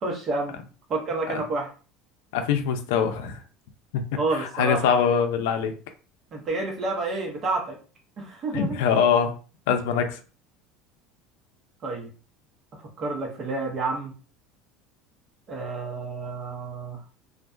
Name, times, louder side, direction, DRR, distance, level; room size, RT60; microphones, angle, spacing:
voice 1, 0.0-0.6 0.9-1.7 4.2-5.0 6.3-7.8 8.2-8.8 11.8-12.1 12.8-14.1 15.5-17.0, right 3 dB, 35° right, 1 dB, 0.9 m, -29 dB
voice 2, 2.3-3.4 3.9-4.0 4.4-5.7 8.5-9.4 9.7-10.2, left 7 dB, 85° left, 7 dB, 0.4 m, -23 dB
2.4 x 2.2 x 2.5 m, 0.36 s
supercardioid pair, 130°, 0 cm